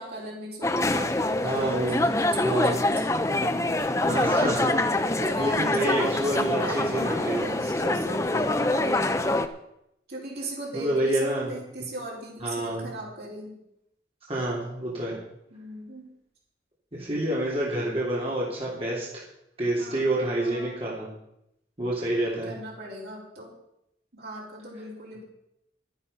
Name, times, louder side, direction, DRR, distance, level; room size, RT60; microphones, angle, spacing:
voice 1, 0.0-3.7 5.2-6.2 6.6-9.4 10.1-13.6 15.5-16.1 19.8-20.9 22.0-23.5 24.1-25.2, right 1 dB, 65° right, -3 dB, 4.7 m, -38 dB
sound 1, 0.6-9.5, left 2 dB, 15° left, 0.6 m, -25 dB
voice 2, 1.4-2.1 2.4-2.8 4.1-7.4 10.7-11.5 12.4-12.9 14.3-15.2 16.9-19.2 19.6-21.1 21.8-22.5, right 1 dB, 35° right, -6 dB, 3.4 m, -28 dB
12.5 x 10.5 x 5.7 m, 0.81 s
head